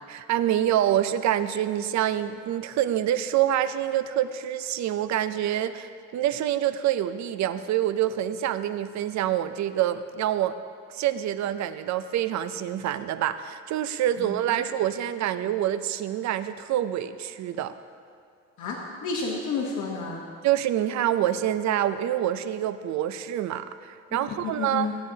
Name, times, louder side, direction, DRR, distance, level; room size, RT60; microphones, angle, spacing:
voice 1, 0.1-10.6 10.9-17.7 20.4-24.9, right 11 dB, 65° right, 12 dB, 0.5 m, -26 dB
voice 2, 18.6-20.2 24.2-24.9, left 4 dB, 75° left, -3 dB, 1.1 m, -31 dB
14.5 x 8.8 x 2.8 m, 2.3 s
cardioid pair, 90°, 30 cm